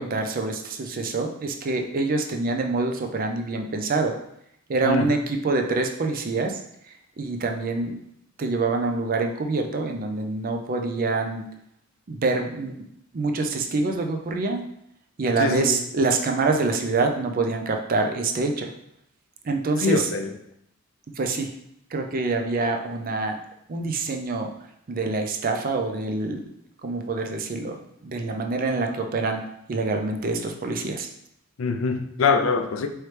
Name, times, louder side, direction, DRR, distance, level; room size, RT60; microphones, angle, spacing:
voice 1, 0.0-4.2 4.7-6.6 7.2-8.0 8.4-11.4 12.1-12.7 13.1-14.6 15.2-18.7 19.4-20.1 21.2-21.5 21.9-23.4 23.7-24.5 24.9-26.4 26.8-29.4 29.7-31.1, right 3 dB, 45° right, 4 dB, 0.5 m, -26 dB
voice 2, 15.4-15.8 19.8-20.3 31.6-32.9, left 4 dB, 70° left, 7 dB, 0.4 m, -23 dB
4.5 x 3.1 x 3.2 m, 0.75 s
head